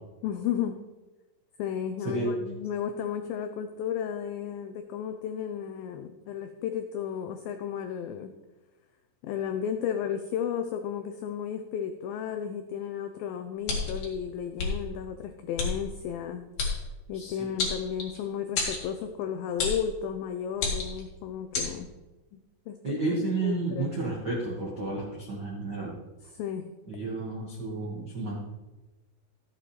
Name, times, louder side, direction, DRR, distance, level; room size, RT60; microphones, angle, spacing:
voice 1, 0.2-0.8 1.6-8.3 9.2-16.5 17.1-21.9 22.3-23.9 26.2-26.7, left 8 dB, 90° left, 7 dB, 2.0 m, -33 dB
sound 1, 13.6-14.1 14.6-14.7 15.6-15.7 16.6-16.7 17.6-18.2 18.6-18.8 19.6-19.8 20.5-21.0 21.5-21.7, left 4 dB, 55° left, 3.0 m, -29 dB
voice 2, 17.1-17.5 22.8-26.0 26.9-28.3, right 3 dB, 75° right, -5 dB, 0.9 m, -31 dB
13.5 x 8.5 x 3.2 m, 1.1 s
omnidirectional pair, 4.8 m